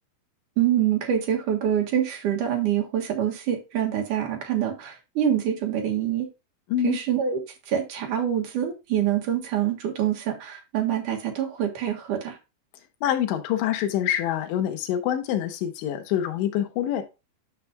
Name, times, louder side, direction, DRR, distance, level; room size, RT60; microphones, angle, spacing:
voice 1, 0.6-6.3 6.8-7.4 7.7-12.4, right 10 dB, 60° right, 2.4 m, -25 dB
voice 2, 13.0-17.0, left 11 dB, 85° left, 3.5 m, -26 dB
10.0 x 5.9 x 2.2 m
omnidirectional pair, 5.1 m